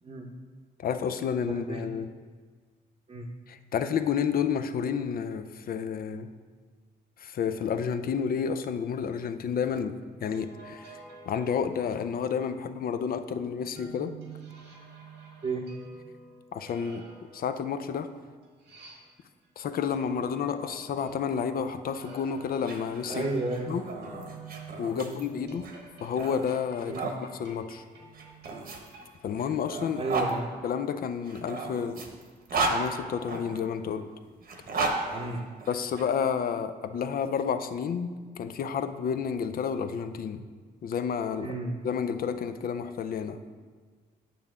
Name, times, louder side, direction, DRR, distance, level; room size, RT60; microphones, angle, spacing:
voice 1, 0.8-2.1 3.5-6.3 7.2-9.9 10.2-14.1 16.5-17.0 17.3-18.1 19.6-23.3 23.7-23.8 24.8-25.7 26.0-27.8 29.2-30.0 30.6-32.0 32.5-34.1 35.7-40.5 40.8-41.5 41.8-43.4, left 7 dB, 60° left, 10 dB, 0.5 m, -30 dB
voice 2, 1.5-1.8 3.1-3.3 15.4-15.7 23.1-23.7 24.9-25.2 26.9-27.0 29.9-30.5 35.1-35.5 41.4-41.8, right 2 dB, 35° right, -1 dB, 0.8 m, -32 dB
sound 1, 10.0-12.5 13.7-19.4 19.9-29.1, right 3 dB, 90° right, 1.7 m, -49 dB
sound 2, 22.5-27.2 28.1-30.3 31.2-33.6 34.4-36.0, right 3 dB, 60° right, 1.1 m, -34 dB
8.4 x 5.7 x 3.6 m, 1.5 s
cardioid pair, 70°, 17 cm